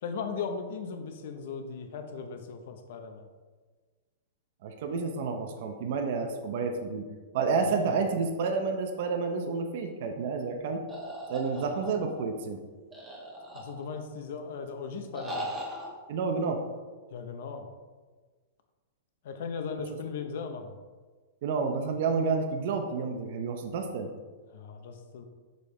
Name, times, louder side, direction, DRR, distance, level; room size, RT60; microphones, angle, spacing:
voice 1, 0.0-3.3 7.6-8.1 11.5-12.0 13.5-15.5 17.1-17.7 19.2-20.8 24.5-25.3, left 5 dB, 60° left, 6 dB, 0.8 m, -38 dB
voice 2, 4.6-7.1 7.3-10.8 11.3-12.6 16.1-16.6 21.4-24.1, right 4 dB, 55° right, 5 dB, 0.6 m, -30 dB
sound 1, 10.9-12.2 12.9-14.1 15.1-15.9, equal, 10° right, 1.2 m, -38 dB
6.4 x 5.2 x 3.3 m, 1.4 s
supercardioid pair, 155°, 0 cm